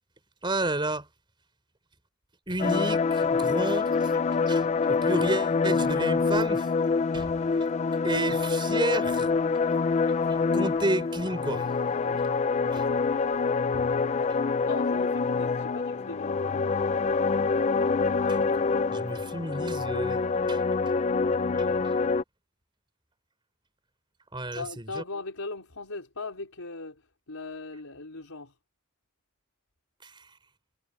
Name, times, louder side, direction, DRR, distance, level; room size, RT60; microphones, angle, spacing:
voice 1, 0.4-1.1 2.5-4.1 4.5-4.6 5.0-6.7 7.1-7.3 8.0-9.3 10.5-11.6 12.7-12.8 18.3-18.4 18.9-20.2 20.5-20.6 21.5-21.9 24.3-25.0 30.0-30.2, right 1 dB, 20° right, 4.4 m, -31 dB
sound 1, 2.6-22.2, left 4 dB, 30° left, 0.4 m, -26 dB
voice 2, 12.7-13.0 14.6-16.6 24.5-28.5, left 3 dB, 90° left, 4.4 m, -39 dB
head